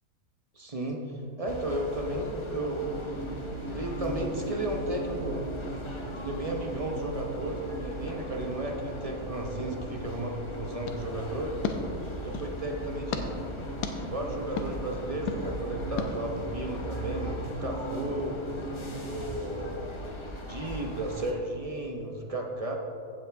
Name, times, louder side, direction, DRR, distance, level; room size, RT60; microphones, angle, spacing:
voice 1, 0.6-1.0 1.4-3.2 3.7-5.5 6.2-11.5 12.2-13.3 13.9-18.4 19.0-19.9 20.5-22.8, right 1 dB, 30° right, 1 dB, 0.7 m, -34 dB
sound 1, 1.5-21.3, equal, 25° left, 0.7 m, -39 dB
sound 2, 2.8-19.1, right 2 dB, 60° right, 1.1 m, -41 dB
sound 3, 10.8-12.6 13.1-13.2 13.8-13.9 14.6-14.7 15.3-15.4 16.0-16.1, left 6 dB, 85° left, 1.4 m, -34 dB
15.0 x 7.5 x 3.5 m, 2.7 s
omnidirectional pair, 1.7 m